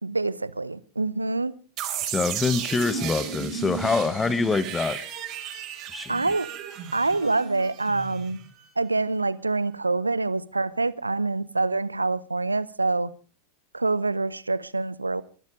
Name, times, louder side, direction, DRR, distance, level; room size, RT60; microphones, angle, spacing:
voice 1, 0.0-1.5 6.1-6.5 6.9-8.4 8.8-13.1 13.7-15.2, right 3 dB, 80° right, 0.8 m, -26 dB
sound 1, 1.8-8.6, right 8 dB, 35° right, 4.4 m, -34 dB
voice 2, 2.1-5.0 5.9-6.2, left 4 dB, 15° left, 1.1 m, -25 dB
23.0 x 12.0 x 5.1 m
figure-of-eight pair, 90°, 0 cm